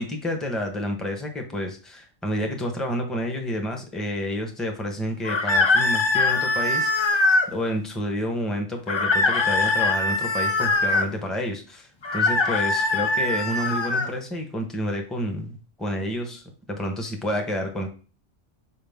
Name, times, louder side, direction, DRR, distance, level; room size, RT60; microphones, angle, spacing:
voice 1, 0.0-17.9, equal, ahead, 3 dB, 0.9 m, -29 dB
sound 1, 5.2-7.5 8.9-11.1 12.0-14.1, left 3 dB, 40° left, 0.4 m, -22 dB
5.7 x 4.8 x 3.6 m, 0.37 s
omnidirectional pair, 1.3 m